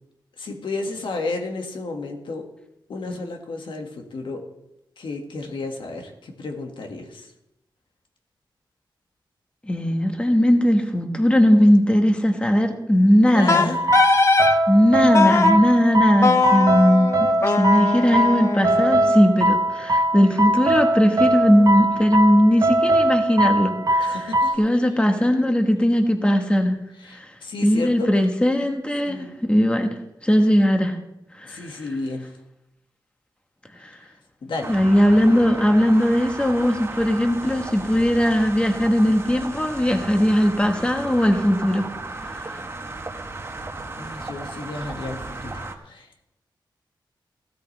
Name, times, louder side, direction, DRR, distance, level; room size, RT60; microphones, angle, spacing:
voice 1, 0.4-2.5 2.9-4.5 5.0-7.3 13.2-13.8 24.0-24.6 26.9-28.2 29.0-29.4 31.4-32.4 33.8-34.8 44.0-46.1, left 3 dB, 80° left, 3 dB, 1.9 m, -32 dB
voice 2, 9.6-13.7 14.7-24.1 24.6-26.8 27.1-27.3 27.6-29.9 30.2-31.0 31.3-31.7 33.8-34.0 34.7-41.9 42.2-42.6, equal, 15° left, 5 dB, 1.3 m, -19 dB
Wind instrument woodwind instrument, 13.5-14.6 15.1-15.6 16.2-19.2, left 3 dB, 35° left, 0.8 m, -21 dB
sound 1, 13.7-24.6, right 1 dB, 45° right, 1.0 m, -21 dB
sound 2, 34.6-45.7, right 3 dB, 30° right, 1.3 m, -35 dB
16.0 x 13.0 x 3.4 m, 0.86 s
wide cardioid pair, 115°, 8 cm